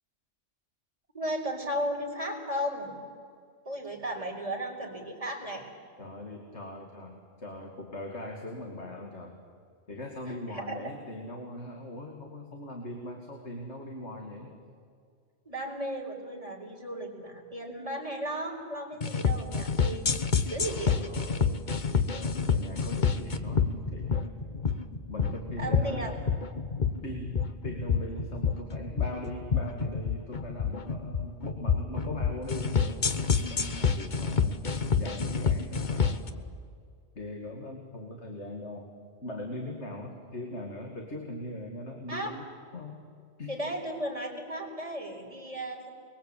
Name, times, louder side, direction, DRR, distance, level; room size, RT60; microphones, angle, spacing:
voice 1, 1.1-2.9 3.6-5.7 10.5-10.8 15.4-20.2 20.5-21.0 25.6-26.2 42.1-42.4 43.5-45.9, equal, 30° right, -1 dB, 4.5 m, -35 dB
voice 2, 6.0-9.4 9.9-14.6 18.9-19.0 20.7-24.3 25.1-26.1 27.0-34.6 35.0-36.5 37.1-38.9 39.2-42.4 42.7-43.1 43.4-43.6, left 1 dB, 70° left, 2 dB, 2.7 m, -40 dB
sound 1, 19.0-36.3, left 6 dB, 40° left, 1.2 m, -28 dB
29.0 x 22.0 x 8.5 m, 2.2 s
omnidirectional pair, 1.2 m